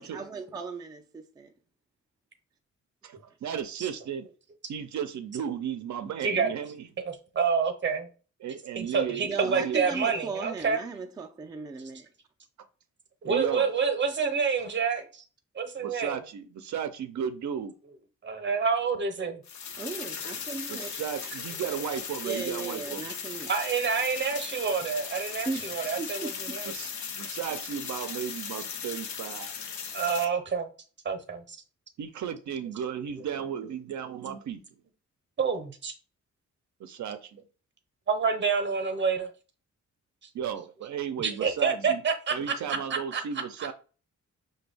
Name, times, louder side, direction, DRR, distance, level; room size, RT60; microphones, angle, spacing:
voice 1, 0.0-1.5 9.3-12.1 19.8-20.9 22.2-23.5 25.5-26.6, right 4 dB, 15° right, 0.4 m, -37 dB
voice 2, 3.0-4.3 4.7-6.9 8.4-9.9 13.2-13.7 15.8-17.8 20.7-23.1 26.6-29.6 32.0-34.6 36.8-37.4 40.3-42.0 42.3-43.7, right 8 dB, 70° right, 0.5 m, -35 dB
voice 3, 6.2-6.5 7.0-8.1 8.7-10.8 13.2-15.2 15.5-16.2 18.2-19.4 23.5-26.7 29.9-30.7 31.0-31.6 35.4-35.9 38.1-39.3 41.2-43.2 43.6-43.7, right 5 dB, 40° right, 0.8 m, -28 dB
sound 1, 19.4-30.2, left 6 dB, 70° left, 0.7 m, -38 dB
5.9 x 2.3 x 3.3 m
wide cardioid pair, 140°, 30 cm